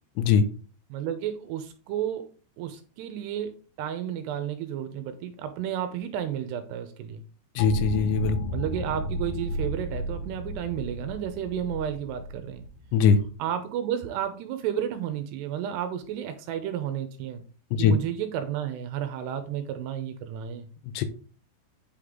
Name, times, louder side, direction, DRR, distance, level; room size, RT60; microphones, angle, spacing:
voice 1, 0.9-2.2 2.6-3.5 3.8-7.2 8.5-12.6 13.4-17.4 17.8-20.7, right 10 dB, 80° right, 9 dB, 2.6 m, -32 dB
voice 2, 7.6-8.4 12.9-13.2 17.7-18.0 20.9-21.1, left 6 dB, 90° left, 10 dB, 3.0 m, -21 dB
sound 1, 7.6-13.3, equal, 60° left, 2.1 m, -33 dB
8.6 x 5.2 x 3.6 m, 0.39 s
omnidirectional pair, 5.2 m